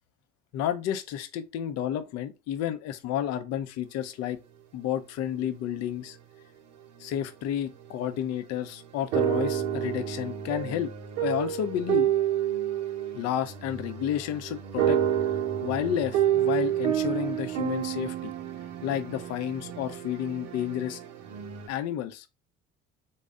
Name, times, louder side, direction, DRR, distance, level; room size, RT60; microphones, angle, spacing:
voice 1, 0.5-4.4 4.7-6.2 7.0-10.9 11.2-12.1 13.1-15.0 15.6-18.3 18.8-21.0 21.7-22.3, left 10 dB, 45° left, 0.6 m, -31 dB
sound 1, 7.9-8.0 8.6-21.7, right 10 dB, 65° right, 0.8 m, -29 dB
4.1 x 2.3 x 3.5 m
figure-of-eight pair, 55°, 36 cm